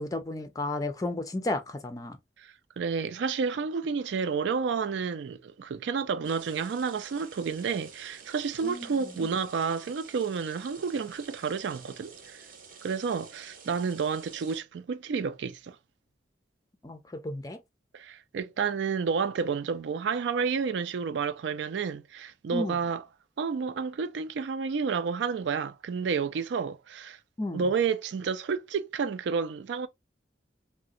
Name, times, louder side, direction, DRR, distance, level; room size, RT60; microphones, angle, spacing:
voice 1, 0.0-2.2 8.6-9.3 16.8-17.6 22.5-22.8 27.4-27.7, left 2 dB, 20° left, 0.4 m, -33 dB
voice 2, 2.4-12.4 12.8-15.8 17.9-23.0 23.4-27.2 27.5-29.9, right 5 dB, 80° right, 0.4 m, -30 dB
sound 1, 6.2-14.6, right 5 dB, 50° right, 0.7 m, -50 dB
3.8 x 2.1 x 2.3 m
head